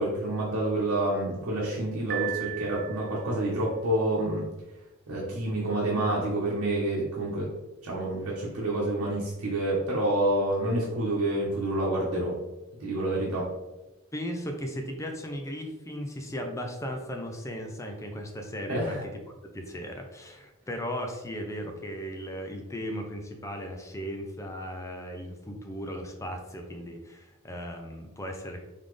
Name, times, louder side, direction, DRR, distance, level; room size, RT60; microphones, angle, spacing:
voice 1, 0.0-4.4 5.1-7.5 7.8-12.3 12.8-13.5 18.7-19.0, right 1 dB, 80° right, -7 dB, 1.1 m, -28 dB
Piano, 2.1-3.4, right 14 dB, 50° right, 0.5 m, -36 dB
voice 2, 14.1-19.1 19.5-28.6, equal, 15° left, 3 dB, 0.5 m, -36 dB
4.0 x 3.6 x 3.2 m, 1.0 s
head